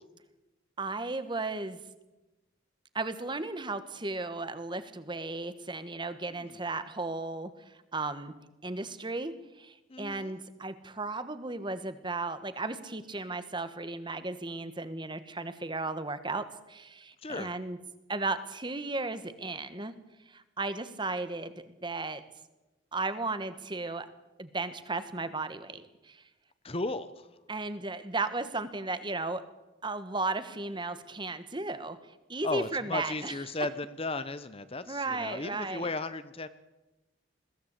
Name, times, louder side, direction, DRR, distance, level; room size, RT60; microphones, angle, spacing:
voice 1, 0.8-1.8 2.9-8.3 8.6-17.8 18.1-19.9 20.3-22.2 22.9-24.1 24.4-26.2 27.5-29.4 29.8-32.0 32.3-33.3 34.9-35.9, right 3 dB, 25° right, 11 dB, 1.3 m, -35 dB
voice 2, 9.9-10.3 17.2-17.5 26.6-27.3 32.4-36.5, left 2 dB, 30° left, 13 dB, 0.8 m, -35 dB
21.5 x 16.0 x 8.3 m, 1.0 s
head